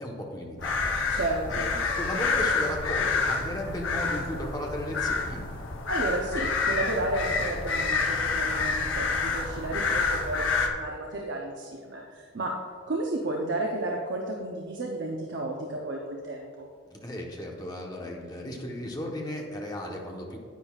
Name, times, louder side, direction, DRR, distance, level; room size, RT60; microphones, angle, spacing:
voice 1, 0.0-1.2 1.5-5.4 16.9-20.4, left 1 dB, 20° left, -1 dB, 1.1 m, -35 dB
sound 1, 0.6-10.7, left 4 dB, 85° left, 0.9 m, -28 dB
voice 2, 1.1-1.7 5.9-12.5 12.9-16.7, right 2 dB, 65° right, -1 dB, 0.8 m, -32 dB
10.5 x 9.1 x 2.4 m, 2.1 s
head